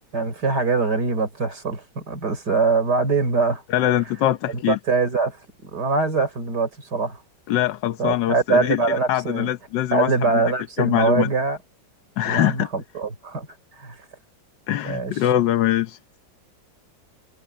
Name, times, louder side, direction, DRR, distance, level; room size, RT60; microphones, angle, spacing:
voice 1, 0.1-3.6 4.5-7.2 8.0-9.5 9.9-11.6 12.2-13.5 13.8-14.0 14.8-15.1, right 4 dB, 65° right, 4.9 m, -23 dB
voice 2, 3.7-4.8 7.5-10.4 10.8-11.3 12.2-12.7 14.7-16.0, left 13 dB, 75° left, 1.5 m, -23 dB
omnidirectional pair, 1.9 m